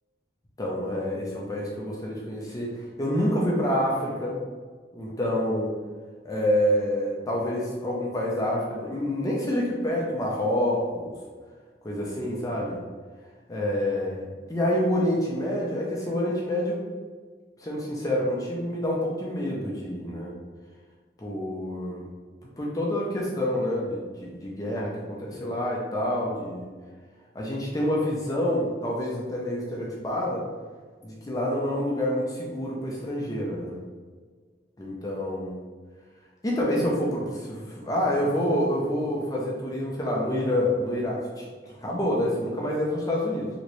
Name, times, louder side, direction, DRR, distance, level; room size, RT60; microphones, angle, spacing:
voice 1, 0.6-4.4 4.9-5.7 6.2-11.1 11.8-12.8 13.5-16.8 17.6-20.3 21.2-22.1 22.6-26.7 27.3-30.4 31.0-33.8 34.8-35.6 36.4-43.5, left 1 dB, 20° left, -3 dB, 0.5 m, -27 dB
3.1 x 2.9 x 2.6 m, 1.5 s
head